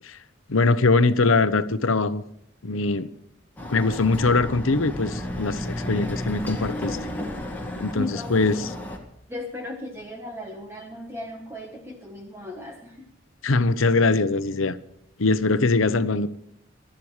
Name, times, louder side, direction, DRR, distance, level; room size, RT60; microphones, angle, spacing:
voice 1, 0.5-2.2 2.6-3.1 3.7-7.0 7.8-8.7 13.4-14.8 15.2-16.3, left 3 dB, 85° left, 0.8 m, -22 dB
Chatter / Car passing by / Motorcycle, 3.6-9.0, left 1 dB, 10° left, 2.0 m, -32 dB
voice 2, 7.9-8.7 9.3-13.0, left 2 dB, 10° right, 1.2 m, -36 dB
22.0 x 12.5 x 3.3 m
head